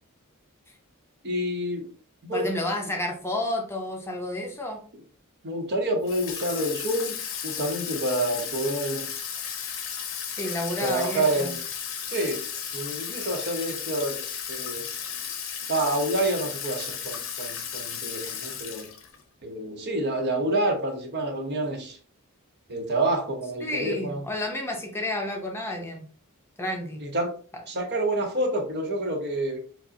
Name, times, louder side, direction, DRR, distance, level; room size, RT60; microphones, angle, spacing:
voice 1, 1.2-1.9 2.2-2.5 5.4-7.2 7.4-9.1 10.8-11.6 12.1-12.4 12.7-14.9 15.7-18.9 19.4-22.0 22.7-24.2 27.0-27.3 27.7-29.6, right 1 dB, 50° right, 3 dB, 0.8 m, -28 dB
voice 2, 2.3-4.8 10.3-11.5 23.6-26.1 26.6-27.0, left 1 dB, 10° left, 1 dB, 0.5 m, -30 dB
Water tap faucet / Sink (filling or washing), 6.1-19.2, left 8 dB, 65° left, 0.6 m, -34 dB
4.6 x 2.0 x 2.7 m, 0.42 s
head